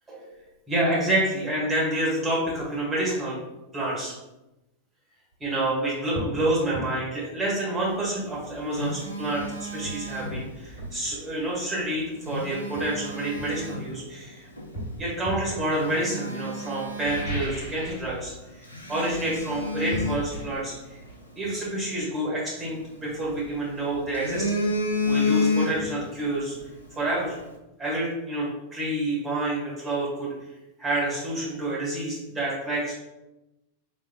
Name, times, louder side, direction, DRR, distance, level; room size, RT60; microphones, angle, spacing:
voice 1, 0.7-3.4 3.7-4.1 5.4-14.4 15.0-18.6 18.9-20.7 21.4-24.4 25.0-26.5 26.9-27.4 27.8-30.3 30.8-32.9, right 1 dB, 20° right, -6 dB, 1.5 m, -28 dB
sound 1, 5.3-5.5 6.1-6.4 6.7-6.9 8.8-8.9 9.4-11.0 12.1-12.2 12.7-14.1 14.7-15.5 16.8-18.1 18.4-18.7 19.0-22.6 22.9-23.0, equal, 60° left, 1.3 m, -37 dB
Telephone, 8.2-10.8 12.0-13.9 14.6-14.7 15.3-15.4 15.7-17.8 18.0-18.2 18.7-21.1 22.6-23.6 24.0-26.1 26.4-26.6, left 2 dB, 85° left, 0.5 m, -30 dB
3.3 x 3.2 x 2.3 m, 0.98 s
figure-of-eight pair, 90°, 0 cm